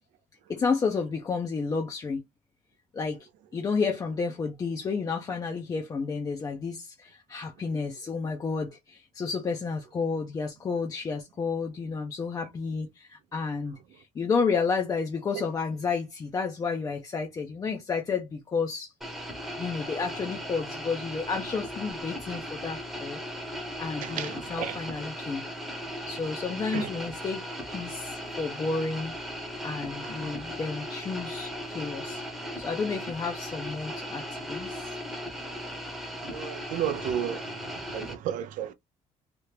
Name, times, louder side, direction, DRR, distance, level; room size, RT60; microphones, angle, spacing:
voice 1, 0.5-2.2 2.9-18.9 19.6-23.2 23.8-25.4 26.1-29.1 29.6-34.8, left 5 dB, 25° left, 0.5 m, -31 dB
sound 1, 19.0-38.1, equal, ahead, 0.8 m, -37 dB
voice 2, 24.0-24.8 26.7-26.9 30.0-30.4 36.2-38.7, right 9 dB, 80° right, 0.5 m, -33 dB
2.8 x 2.4 x 3.3 m
cardioid pair, 150°, 13 cm